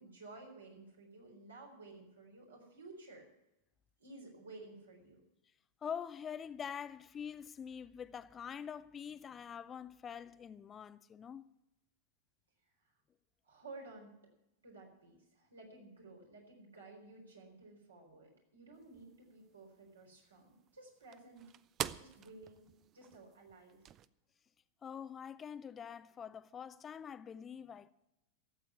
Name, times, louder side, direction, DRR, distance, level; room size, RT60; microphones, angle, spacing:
voice 1, 0.0-3.2 4.0-5.2 12.8-12.9 13.4-14.1 14.6-21.4 21.9-22.6 22.9-23.8, right 2 dB, 75° right, 4.2 m, -54 dB
voice 2, 5.8-11.4 24.8-27.9, left 7 dB, 20° left, 0.5 m, -45 dB
sound 1, 18.7-24.1, right 10 dB, 30° right, 0.5 m, -47 dB
13.5 x 8.0 x 9.5 m
figure-of-eight pair, 90°, 0 cm